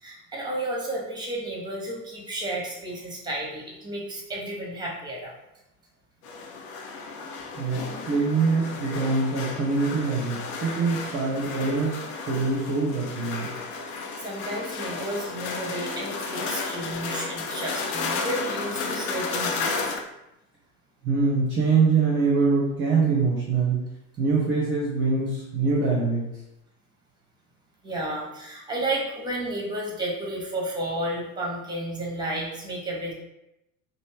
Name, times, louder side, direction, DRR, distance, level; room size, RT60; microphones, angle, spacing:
voice 1, 0.0-5.3 14.2-19.9 27.8-33.1, right 1 dB, 10° right, -3 dB, 1.0 m, -32 dB
sound 1, 6.2-20.0, left 4 dB, 45° left, 0.6 m, -33 dB
voice 2, 7.5-13.5 21.0-23.8 24.2-26.2, right 4 dB, 30° right, -5 dB, 0.7 m, -24 dB
3.1 x 2.6 x 3.1 m, 0.88 s
figure-of-eight pair, 70°, 43 cm